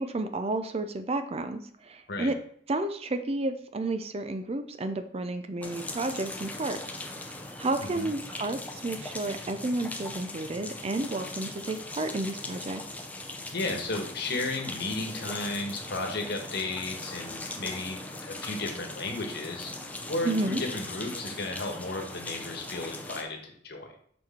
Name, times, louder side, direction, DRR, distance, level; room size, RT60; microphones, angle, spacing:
voice 1, 0.0-2.3 2.7-6.8 7.2-7.3 7.6-12.8 20.2-20.6, right 2 dB, 35° right, 9 dB, 0.5 m, -31 dB
sound 1, 5.6-23.2, left 2 dB, 10° left, 0.6 m, -40 dB
voice 2, 13.5-23.9, left 2 dB, 60° left, 3 dB, 1.3 m, -34 dB
6.3 x 4.5 x 4.3 m, 0.63 s
head